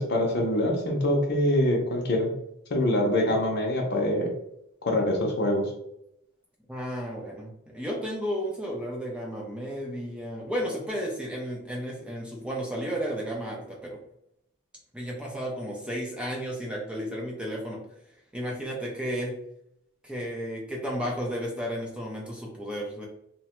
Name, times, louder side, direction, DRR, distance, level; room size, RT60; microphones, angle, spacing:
voice 1, 0.0-2.3 2.7-4.3 4.8-5.6, left 1 dB, 55° left, 1 dB, 0.6 m, -24 dB
voice 2, 6.7-14.0 14.9-17.8 18.3-19.3 20.0-23.1, equal, 5° right, -2 dB, 0.4 m, -33 dB
2.9 x 2.1 x 2.9 m, 0.78 s
head